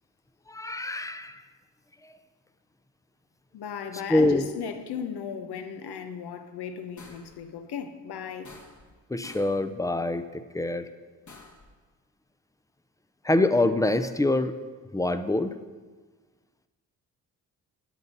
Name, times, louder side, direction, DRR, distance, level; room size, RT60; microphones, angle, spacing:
voice 1, 0.5-1.4 4.1-4.5 9.1-10.3 10.5-10.8 13.2-14.5 14.9-15.5, left 2 dB, 10° left, 0.6 m, -25 dB
voice 2, 3.5-8.5, left 7 dB, 65° left, 1.0 m, -36 dB
sound 1, 7.0-7.4 8.4-9.0 9.2-9.6 11.3-11.7, left 3 dB, 45° left, 1.6 m, -49 dB
12.0 x 5.4 x 5.4 m
hypercardioid pair, 45°, 42 cm